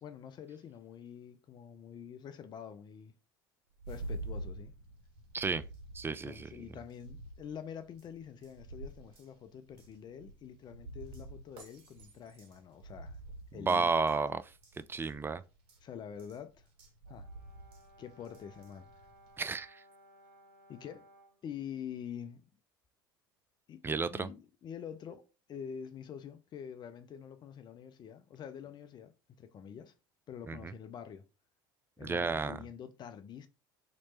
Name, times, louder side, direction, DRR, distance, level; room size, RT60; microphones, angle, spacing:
voice 1, 0.0-3.1 3.9-4.7 6.0-13.2 13.5-13.9 15.8-16.6 17.1-17.3 18.0-18.9 20.7-21.1 21.4-22.4 23.7-29.9 30.3-31.2 32.0-33.5, left 8 dB, 40° left, 0.6 m, -46 dB
sound 1, 3.7-19.6, right 2 dB, 55° right, 1.6 m, -48 dB
voice 2, 5.9-6.5 13.6-14.5 14.9-15.4 19.4-19.8 23.8-24.3 30.5-30.7 32.0-32.6, right 4 dB, 20° right, 0.3 m, -32 dB
Brass instrument, 17.0-21.4, right 1 dB, 80° right, 1.4 m, -60 dB
3.1 x 3.0 x 4.3 m
hypercardioid pair, 70°, 11 cm